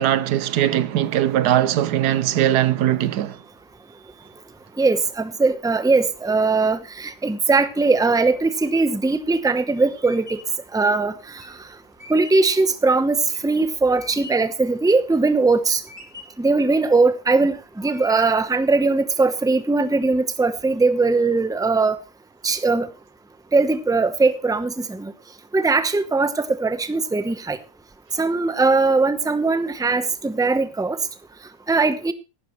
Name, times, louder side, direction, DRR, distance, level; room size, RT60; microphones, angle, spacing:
voice 1, 0.0-3.4, right 12 dB, 85° right, 1.4 m, -20 dB
voice 2, 4.8-10.4 10.7-11.4 12.1-15.8 16.4-22.0 22.4-22.9 23.5-25.1 25.5-27.6 28.2-31.0 31.7-32.1, right 3 dB, 5° right, 0.5 m, -20 dB
sound 1, 9.2-14.6 15.0-15.6 15.9-16.5 17.0-17.5 17.9-18.6, left 3 dB, 25° right, 2.7 m, -43 dB
15.0 x 12.0 x 3.1 m
omnidirectional pair, 1.7 m